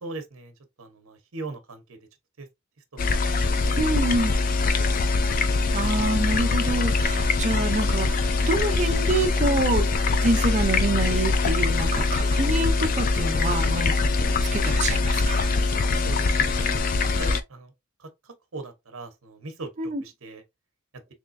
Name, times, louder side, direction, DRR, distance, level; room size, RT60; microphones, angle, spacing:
voice 1, 0.0-2.0 2.4-2.5 2.9-3.2 3.6-4.4 4.7-4.9 16.0-16.9 17.1-17.7 18.0-20.4, right 2 dB, 70° right, 0.9 m, -40 dB
sound 1, 3.0-17.4, left 3 dB, 40° left, 0.4 m, -23 dB
voice 2, 3.8-4.3 5.7-9.9 10.2-15.5 19.8-20.0, right 2 dB, 30° right, 0.5 m, -27 dB
3.6 x 3.1 x 2.5 m
head